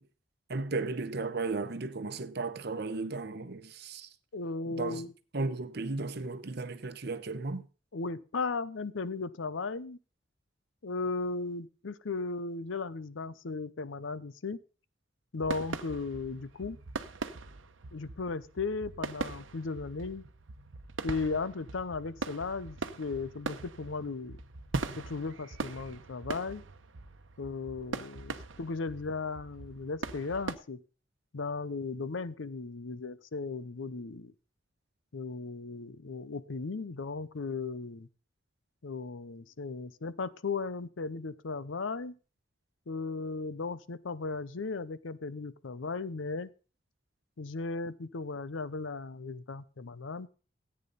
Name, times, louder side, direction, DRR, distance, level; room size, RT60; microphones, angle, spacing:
voice 1, 0.5-4.1 4.8-5.0 5.3-7.6, right 3 dB, 60° right, 0.9 m, -35 dB
voice 2, 4.3-5.1 7.9-10.0 10.8-14.6 15.3-16.8 17.9-20.2 21.0-24.4 25.0-26.6 27.4-30.8 31.3-34.3 35.1-38.1 38.8-42.2 42.9-46.5 47.4-50.3, left 4 dB, 85° left, 0.7 m, -36 dB
sound 1, 15.4-30.5, right 3 dB, 90° right, 0.9 m, -41 dB
14.0 x 8.9 x 4.0 m
head